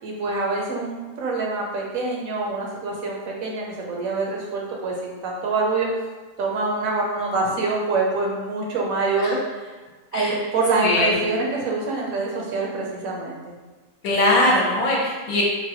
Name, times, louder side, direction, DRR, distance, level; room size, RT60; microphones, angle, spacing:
voice 1, 0.0-5.9 6.4-9.7 10.1-13.4, right 3 dB, 70° right, -2 dB, 0.9 m, -25 dB
voice 2, 10.8-11.1 14.0-15.4, left 1 dB, 70° left, -4 dB, 1.1 m, -20 dB
3.8 x 2.1 x 2.7 m, 1.3 s
omnidirectional pair, 1.7 m